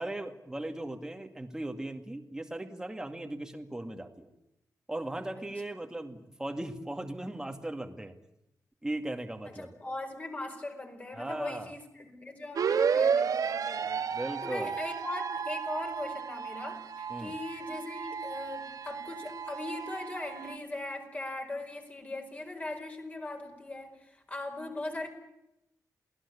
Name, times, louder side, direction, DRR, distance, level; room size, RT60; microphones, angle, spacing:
voice 1, 0.0-4.3 4.9-8.1 8.8-9.8 11.1-11.7 14.1-14.7 17.1-17.3, right 1 dB, 10° right, 6 dB, 2.2 m, -38 dB
voice 2, 9.5-25.1, left 2 dB, 25° left, 5 dB, 4.9 m, -40 dB
sound 1, 12.6-20.6, right 6 dB, 70° right, 1.5 m, -32 dB
28.0 x 19.0 x 8.4 m, 0.86 s
wide cardioid pair, 175°, 6 cm